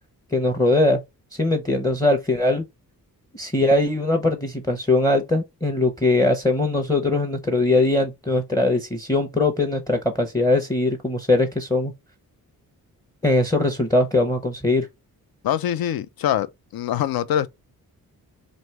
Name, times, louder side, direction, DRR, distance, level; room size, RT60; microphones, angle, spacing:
voice 1, 0.3-1.0 1.4-2.6 3.3-11.9 13.2-14.9, left 2 dB, 10° left, 0.7 m, -21 dB
voice 2, 15.4-16.5 16.7-17.5, left 10 dB, 75° left, 0.5 m, -23 dB
3.1 x 2.6 x 4.5 m
wide cardioid pair, 120°, 36 cm